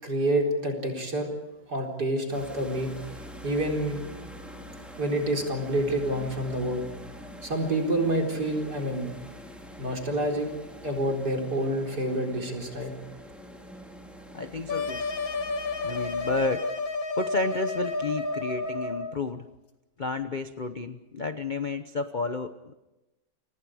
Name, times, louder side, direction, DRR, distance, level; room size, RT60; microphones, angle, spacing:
voice 1, 0.0-1.3 1.7-2.9 3.4-4.0 5.0-6.8 7.4-9.1 9.8-10.5 10.8-12.9, right 1 dB, 55° right, 1 dB, 4.8 m, -28 dB
sound 1, 2.3-16.5, equal, ahead, 4.6 m, -45 dB
voice 2, 14.3-15.0 15.8-16.7 17.1-19.5 20.0-22.7, left 3 dB, 35° left, 9 dB, 0.8 m, -31 dB
sound 2, 14.7-19.2, left 3 dB, 90° left, 2.8 m, -31 dB
30.0 x 25.5 x 4.9 m, 1.0 s
omnidirectional pair, 2.1 m